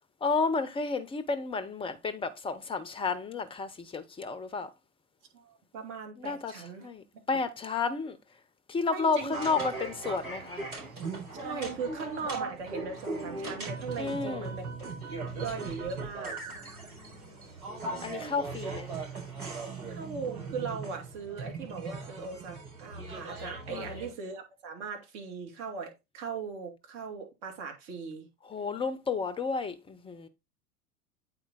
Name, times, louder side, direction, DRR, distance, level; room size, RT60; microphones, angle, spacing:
voice 1, 0.2-4.7 6.2-8.2 8.7-10.6 14.0-14.5 16.5-17.5 18.0-18.9 23.7-24.0 28.4-30.3, left 4 dB, 10° left, 0.7 m, -32 dB
voice 2, 5.3-6.9 8.9-9.7 11.4-14.6 15.2-16.4 19.9-28.3, right 5 dB, 50° right, 2.6 m, -39 dB
sound 1, 9.3-24.1, right 3 dB, 75° right, 4.5 m, -39 dB
8.5 x 4.5 x 3.8 m
figure-of-eight pair, 90°, 44 cm